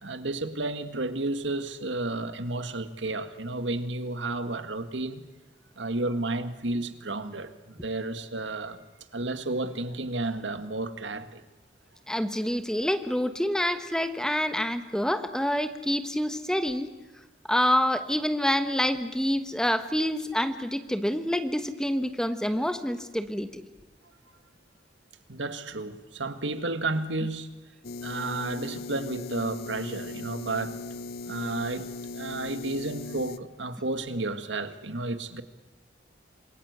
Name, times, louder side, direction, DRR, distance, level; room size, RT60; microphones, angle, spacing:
voice 1, 0.0-5.2 5.8-8.8 9.1-11.4 25.3-27.5 28.0-30.8 31.3-31.9 32.1-35.4, right 2 dB, 85° right, 10 dB, 1.8 m, -32 dB
voice 2, 12.1-16.9 17.5-23.6, equal, 5° left, 9 dB, 1.3 m, -27 dB
sound 1, 27.8-33.4, left 3 dB, 55° left, 0.8 m, -38 dB
27.0 x 22.0 x 8.1 m, 1.1 s
head